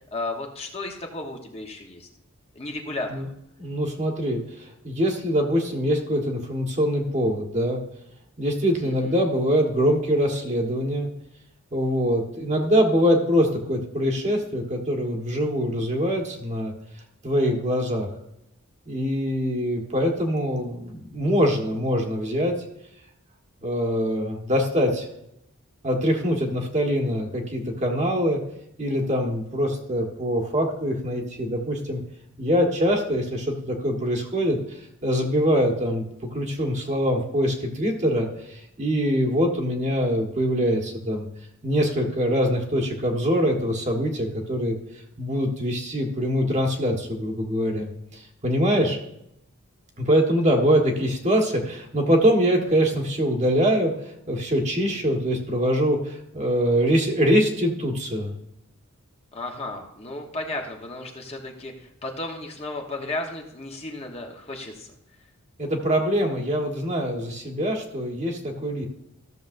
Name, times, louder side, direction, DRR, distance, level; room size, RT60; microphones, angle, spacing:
voice 1, 0.1-2.1 2.5-3.3 8.8-9.2 59.3-64.9, left 2 dB, 30° left, 1 dB, 1.1 m, -34 dB
voice 2, 3.6-7.8 8.4-11.1 11.7-16.7 17.2-18.1 18.9-22.5 23.6-25.0 25.8-28.4 28.8-32.0 32.4-34.6 35.0-36.0 36.3-41.3 41.6-44.8 45.2-49.0 50.0-53.9 54.3-58.3 65.6-68.9, equal, 35° right, 2 dB, 1.4 m, -23 dB
14.0 x 6.9 x 2.6 m, 0.79 s
head